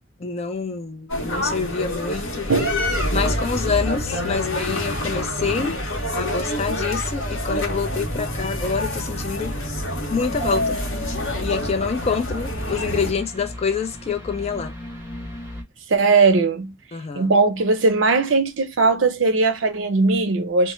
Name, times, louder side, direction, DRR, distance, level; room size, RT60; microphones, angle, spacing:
voice 1, 0.2-2.5 3.1-5.8 6.1-9.5 10.1-10.8 11.4-14.7 16.9-17.3, left 5 dB, 35° left, 0.4 m, -26 dB
sound 1, 1.1-13.1, left 1 dB, 80° left, 0.9 m, -26 dB
voice 2, 2.5-2.8 15.9-16.7 17.2-20.7, right 3 dB, 70° right, 0.6 m, -19 dB
sound 2, 10.2-15.6, left 1 dB, 10° right, 0.8 m, -36 dB
2.1 x 2.0 x 3.0 m
head